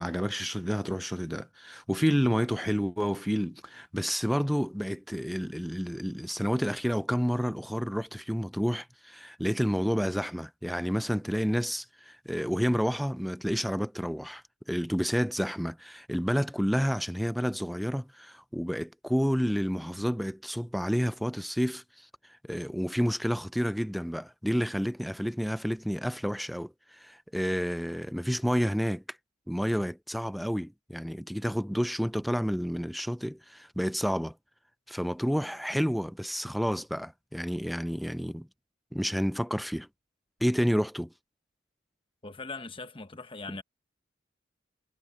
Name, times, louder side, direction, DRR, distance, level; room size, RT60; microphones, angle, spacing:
voice 1, 0.0-14.4 14.7-21.8 22.5-29.0 29.5-34.3 34.9-38.5 38.9-39.9 40.4-41.1, equal, ahead, 0.3 m, -30 dB
voice 2, 42.2-43.6, left 3 dB, 30° left, 1.0 m, -40 dB
head